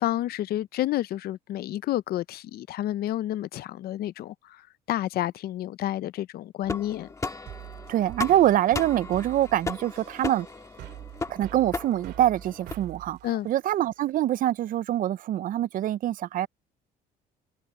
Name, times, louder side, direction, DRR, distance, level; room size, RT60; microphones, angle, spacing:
voice 1, 0.0-7.1 13.2-13.5, left 13 dB, 65° left, 0.7 m, -30 dB
sound 1, 6.6-12.7, left 3 dB, 20° left, 1.6 m, -36 dB
sound 2, 7.5-14.1, right 14 dB, 80° right, 2.4 m, -44 dB
voice 2, 7.9-10.5 11.3-13.2 13.4-16.5, right 12 dB, 55° right, 0.5 m, -24 dB
cardioid pair, 110°, 17 cm